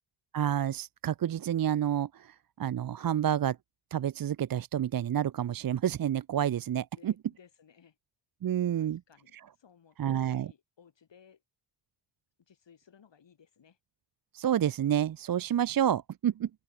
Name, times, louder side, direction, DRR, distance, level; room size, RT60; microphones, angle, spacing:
voice 1, 0.3-3.6 3.9-7.1 8.4-9.0 10.0-10.5 14.3-16.5, right 10 dB, 55° right, 0.6 m, -29 dB
voice 2, 7.0-8.0 8.7-11.4 12.4-13.8, left 7 dB, 85° left, 5.8 m, -60 dB
cardioid pair, 70°, 43 cm